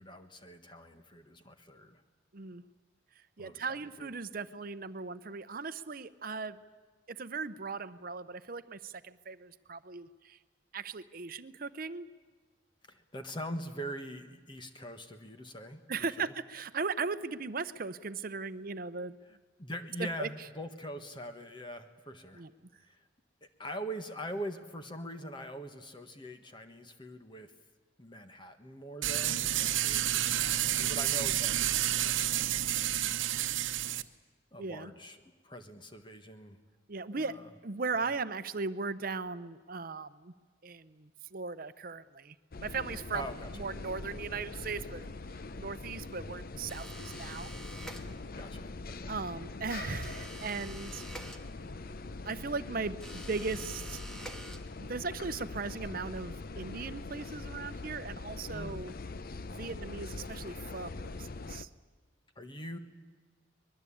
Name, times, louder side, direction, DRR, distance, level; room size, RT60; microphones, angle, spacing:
voice 1, 0.0-2.0 3.4-4.1 12.9-15.8 16.2-16.3 19.2-22.4 22.8-23.1 23.6-27.5 28.0-33.3 34.5-35.2 35.4-36.6 37.1-37.5 43.1-43.7 48.3-49.1 58.5-58.8 62.3-62.8, equal, 25° left, 7 dB, 1.4 m, -43 dB
voice 2, 3.4-6.6 7.2-10.4 10.7-12.1 15.9-19.1 20.0-20.3 22.4-22.5 34.6-34.9 36.9-37.3 37.6-40.3 40.6-43.2 43.6-45.1 45.6-47.5 49.1-51.0 52.3-54.0 54.8-58.9 59.5-61.7, right 4 dB, 45° right, 13 dB, 0.7 m, -38 dB
sound 1, 29.0-34.0, right 12 dB, 80° right, 0.9 m, -30 dB
sound 2, 42.5-61.6, left 3 dB, 50° left, 0.7 m, -42 dB
sound 3, 46.7-48.5 50.0-51.9 53.0-55.0, right 1 dB, 5° left, 1.5 m, -48 dB
24.0 x 21.5 x 8.6 m, 1.4 s
head